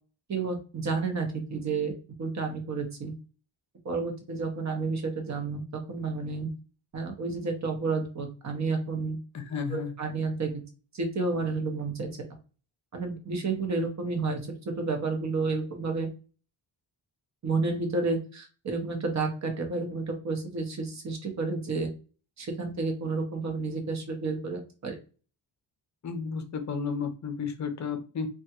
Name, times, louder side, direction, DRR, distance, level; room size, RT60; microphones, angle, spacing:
voice 1, 0.3-1.9 2.2-3.1 3.8-6.5 6.9-9.2 9.7-10.5 10.9-12.1 12.9-16.1 17.4-21.9 22.4-25.0, right 3 dB, 40° right, 4 dB, 0.8 m, -31 dB
voice 2, 9.3-9.9 26.0-28.3, left 5 dB, 40° left, 7 dB, 0.6 m, -32 dB
3.4 x 2.3 x 2.9 m, 0.35 s
wide cardioid pair, 170°, 44 cm